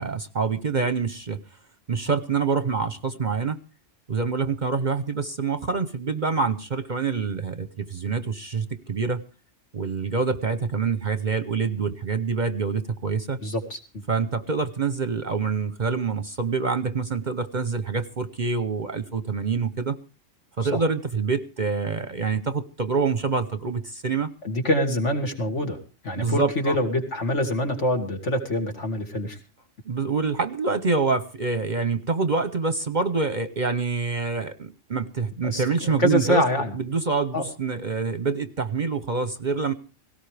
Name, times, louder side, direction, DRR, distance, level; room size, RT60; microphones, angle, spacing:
voice 1, 0.0-1.4 1.9-3.6 4.1-9.2 9.7-13.4 14.1-20.0 20.6-24.3 26.2-26.8 29.9-36.4 36.7-39.7, right 4 dB, 40° right, 12 dB, 0.9 m, -26 dB
voice 2, 13.4-14.0 20.7-20.8 24.4-25.8 26.0-29.4 35.4-36.7 37.3-37.4, left 1 dB, 65° left, 3 dB, 2.9 m, -25 dB
18.0 x 17.5 x 3.3 m, 0.34 s
omnidirectional pair, 1.3 m